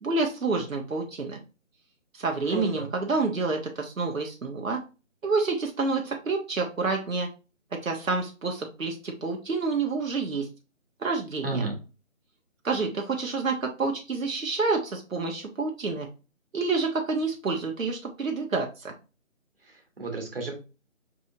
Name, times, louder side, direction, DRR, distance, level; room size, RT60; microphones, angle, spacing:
voice 1, 0.0-1.4 2.1-4.8 5.2-7.3 7.7-10.5 11.0-11.5 12.6-16.1 16.5-18.9, right 4 dB, 80° right, 2 dB, 1.1 m, -28 dB
voice 2, 2.5-2.9 11.4-11.8 19.7-20.5, right 3 dB, 45° right, 1 dB, 1.4 m, -32 dB
5.9 x 2.8 x 2.7 m, 0.32 s
figure-of-eight pair, 180°, 40 cm